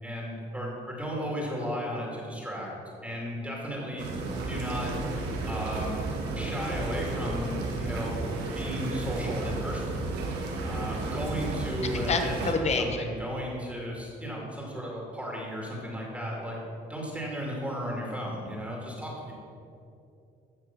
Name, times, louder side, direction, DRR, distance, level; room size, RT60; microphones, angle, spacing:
voice 1, 0.0-2.7 3.0-4.1 4.5-4.9 5.5-6.0 6.4-9.9 10.6-16.6 16.9-19.3, equal, 5° right, -3 dB, 2.5 m, -34 dB
sound 1, 4.0-12.5, right 3 dB, 80° right, 1.9 m, -33 dB
voice 2, 12.1-12.8, left 4 dB, 40° left, 6 dB, 1.3 m, -26 dB
14.5 x 5.9 x 6.0 m, 2.7 s
cardioid pair, 110°, 17 cm